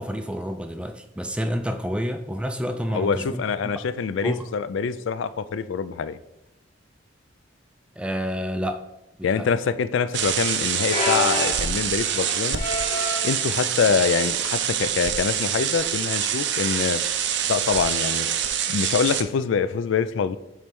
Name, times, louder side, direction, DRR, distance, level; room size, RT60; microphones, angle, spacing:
voice 1, 0.0-3.4 3.8-3.9 4.2-4.5 8.0-8.8 9.2-9.6, equal, 5° right, 7 dB, 0.3 m, -29 dB
voice 2, 2.9-6.2 9.2-12.6 13.2-17.0 17.5-18.3 18.7-20.4, left 6 dB, 75° left, 14 dB, 0.3 m, -25 dB
sound 1, 10.1-19.2, right 9 dB, 60° right, 0.5 m, -25 dB
sound 2, 10.9-13.4 14.1-14.4 14.7-14.8 15.7-16.0 17.6-17.7, left 1 dB, 45° left, 2.2 m, -29 dB
7.3 x 3.2 x 5.3 m, 0.94 s
head